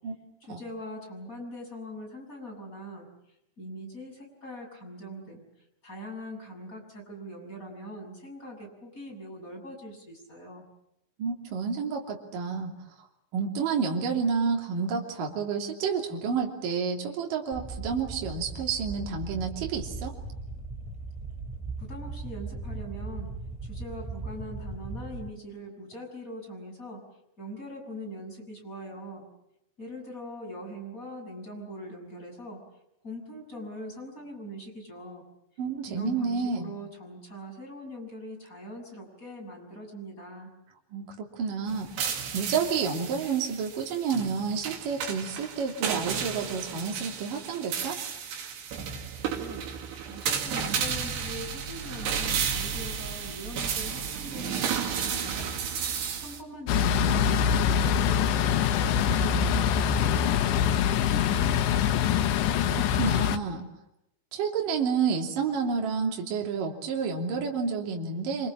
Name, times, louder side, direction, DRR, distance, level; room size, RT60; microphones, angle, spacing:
voice 1, 0.5-3.1 3.6-5.4 5.8-10.7 21.8-23.3 23.6-27.0 27.4-29.3 29.8-32.6 33.0-35.2 35.9-40.5 49.2-49.7 50.1-55.6 56.2-59.5 59.9-62.1, equal, 20° left, 1 dB, 7.1 m, -42 dB
voice 2, 11.2-12.7 13.3-20.2 35.6-36.7 40.9-41.9 42.3-48.0 62.7-63.7 64.3-68.5, right 5 dB, 55° right, 1 dB, 4.4 m, -30 dB
sound 1, 17.5-25.3, right 3 dB, ahead, 1.7 m, -38 dB
sound 2, 41.7-56.4, right 7 dB, 75° right, 4.4 m, -33 dB
sound 3, 56.7-63.4, left 8 dB, 90° left, 3.4 m, -24 dB
26.5 x 26.0 x 7.5 m, 0.83 s
omnidirectional pair, 5.0 m